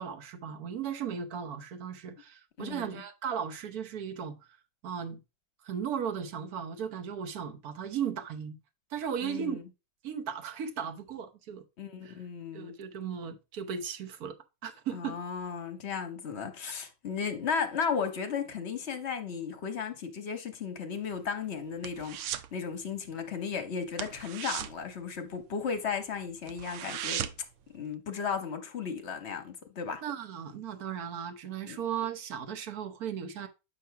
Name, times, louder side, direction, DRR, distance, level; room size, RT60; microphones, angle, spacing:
voice 1, 0.0-4.4 4.8-5.2 5.6-8.6 8.9-9.6 10.0-11.6 12.0-12.2 12.5-14.4 14.6-15.2 16.7-16.8 30.0-33.5, right 8 dB, 65° right, 1.4 m, -36 dB
voice 2, 2.6-3.0 9.2-9.6 11.8-12.7 14.9-27.3 27.7-30.0 31.6-31.8, left 6 dB, 45° left, 1.0 m, -35 dB
sound 1, 21.0-22.6 22.8-23.1 23.4-23.5 23.9-25.8 26.1-26.2 26.5-27.6 27.9-28.0, right 11 dB, 90° right, 0.6 m, -37 dB
8.4 x 3.0 x 5.7 m
omnidirectional pair, 1.8 m